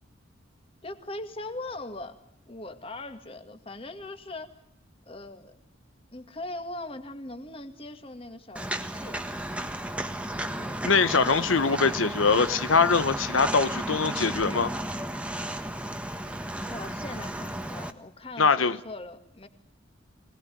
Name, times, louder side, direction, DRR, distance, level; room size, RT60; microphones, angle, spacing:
voice 1, 0.8-2.2 2.5-4.5 5.1-5.5 6.1-9.2 10.6-10.8 16.6-19.5, left 2 dB, 30° left, 8 dB, 2.2 m, -40 dB
Walk footsteps, 8.5-17.9, right 1 dB, 5° right, 1.4 m, -33 dB
voice 2, 10.8-14.7 18.4-18.8, left 5 dB, 85° left, 12 dB, 1.0 m, -23 dB
25.0 x 19.5 x 9.4 m, 0.70 s
head